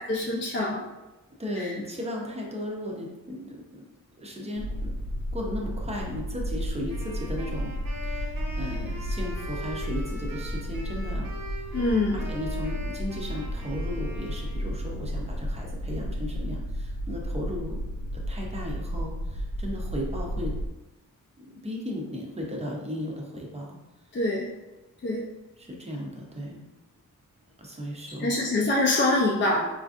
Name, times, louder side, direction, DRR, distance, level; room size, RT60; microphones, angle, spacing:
voice 1, 0.1-0.8 1.6-1.7 11.7-12.2 24.1-24.5 25.0-25.2 28.2-29.6, left 2 dB, 35° left, -2 dB, 0.4 m, -24 dB
voice 2, 1.4-3.8 4.2-5.0 5.3-11.3 12.1-17.8 18.1-20.5 21.4-23.8 25.6-26.6 27.6-28.3, left 1 dB, 20° right, -1 dB, 0.5 m, -36 dB
sound 1, 4.5-20.7, equal, 75° left, 0.8 m, -33 dB
Wind instrument woodwind instrument, 6.9-15.1, equal, 85° right, 0.8 m, -42 dB
4.4 x 2.5 x 2.4 m, 1.1 s
wide cardioid pair, 160°, 33 cm